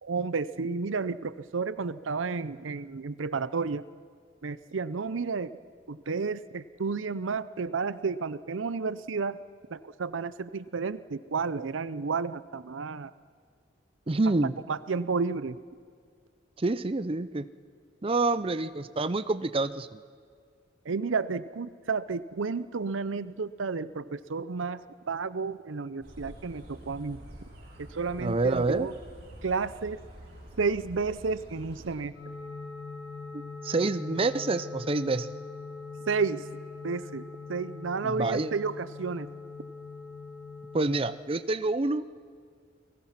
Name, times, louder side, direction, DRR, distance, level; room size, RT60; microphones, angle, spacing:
voice 1, 0.0-3.8 4.4-5.5 5.9-9.4 9.7-13.1 14.7-15.6 20.9-24.8 25.1-27.2 27.8-28.9 29.4-30.0 30.6-32.1 36.1-36.4 36.8-37.2 37.5-39.3, right 4 dB, 90° right, 15 dB, 0.7 m, -31 dB
voice 2, 14.1-14.5 16.6-17.5 18.0-20.0 28.2-28.9 33.3-35.3 38.0-38.5 40.7-42.1, right 3 dB, 30° right, 13 dB, 0.6 m, -27 dB
sound 1, 26.0-31.9, right 1 dB, 55° right, 7.1 m, -47 dB
sound 2, 32.1-41.1, left 4 dB, 60° left, 7.4 m, -42 dB
30.0 x 20.0 x 5.9 m, 2.1 s
head